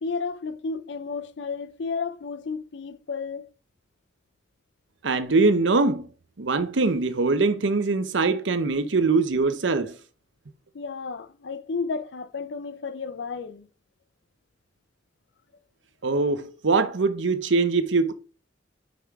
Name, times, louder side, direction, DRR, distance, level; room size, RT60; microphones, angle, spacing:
voice 1, 0.0-3.5 10.7-13.7, left 4 dB, 70° left, 0.6 m, -32 dB
voice 2, 5.0-6.1 6.4-9.9 16.0-18.1, right 3 dB, 75° right, 0.8 m, -22 dB
5.8 x 4.9 x 4.7 m
head